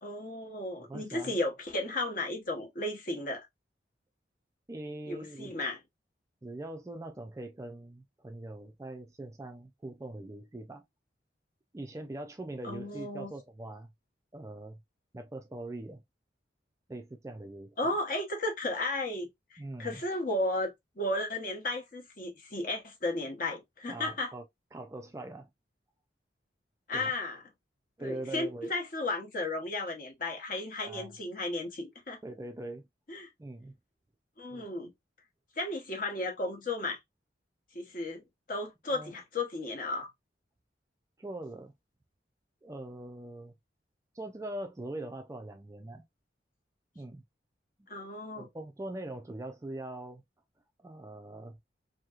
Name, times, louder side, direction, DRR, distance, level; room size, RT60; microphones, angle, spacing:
voice 1, 0.0-3.5 5.1-5.8 12.6-13.3 17.8-24.3 26.9-27.4 28.0-32.2 33.1-33.3 34.4-34.9 35.6-37.0 37.7-40.1 47.9-48.5, left 2 dB, 50° left, 0.9 m, -34 dB
voice 2, 0.9-1.3 4.7-5.5 6.4-10.8 11.7-13.9 14.3-14.8 15.1-16.0 16.9-17.8 19.6-20.0 23.9-24.4 24.7-25.5 26.9-27.1 28.0-28.7 30.8-31.1 32.2-32.8 33.4-33.7 34.5-34.7 38.9-39.1 41.2-41.7 42.6-43.5 44.1-46.0 47.0-47.2 48.4-50.2 50.8-51.6, right 1 dB, 15° right, 0.3 m, -42 dB
2.9 x 2.7 x 2.4 m
head